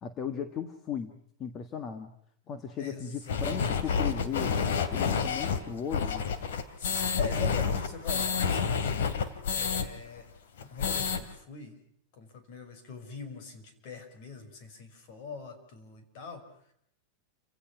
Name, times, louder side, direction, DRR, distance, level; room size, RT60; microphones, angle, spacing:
voice 1, 0.0-2.1 2.5-4.6 4.9-6.3, left 7 dB, 25° left, 8 dB, 1.6 m, -36 dB
voice 2, 2.8-4.0 6.8-8.8 9.5-10.3 10.6-11.8 12.2-16.4, left 5 dB, 50° left, 9 dB, 5.3 m, -42 dB
sound 1, 3.3-9.9 10.2-10.3 10.6-11.2, left 6 dB, 85° left, 2.7 m, -29 dB
29.5 x 17.0 x 5.9 m, 0.68 s
supercardioid pair, 155°, 0 cm